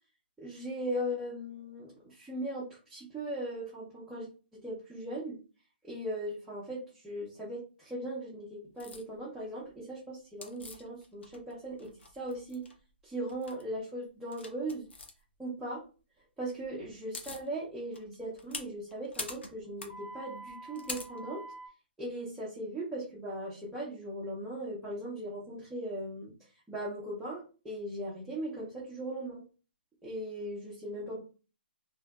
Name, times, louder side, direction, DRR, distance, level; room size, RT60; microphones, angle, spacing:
voice 1, 0.4-4.3 4.6-5.4 5.8-12.7 13.0-14.9 15.4-15.8 16.4-21.4 22.0-26.3 26.7-29.5 30.0-31.2, right 1 dB, 5° right, -9 dB, 0.7 m, -38 dB
sound 1, 8.8-9.0 10.4-11.5 11.8-12.7 13.3-13.6 14.3-15.1 16.6-16.7 16.9-17.5 17.9-21.7, left 2 dB, 80° left, 0.6 m, -43 dB
2.7 x 2.1 x 2.2 m, 0.35 s
hypercardioid pair, 140°, 6 cm